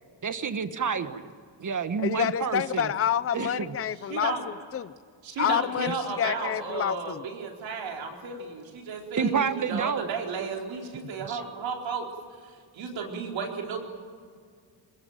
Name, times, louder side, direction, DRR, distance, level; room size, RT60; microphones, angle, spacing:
voice 1, 0.2-1.3 1.6-2.9 3.3-3.7 9.2-10.1 11.2-11.4, right 6 dB, 40° right, 10 dB, 1.5 m, -29 dB
voice 2, 2.0-4.9 5.4-7.2, left 9 dB, 30° left, 16 dB, 0.6 m, -28 dB
voice 3, 4.1-4.5 5.2-12.1 12.4-13.8, right 5 dB, 85° right, 1 dB, 4.2 m, -34 dB
22.0 x 21.5 x 9.1 m, 2.1 s
cardioid pair, 95°, 44 cm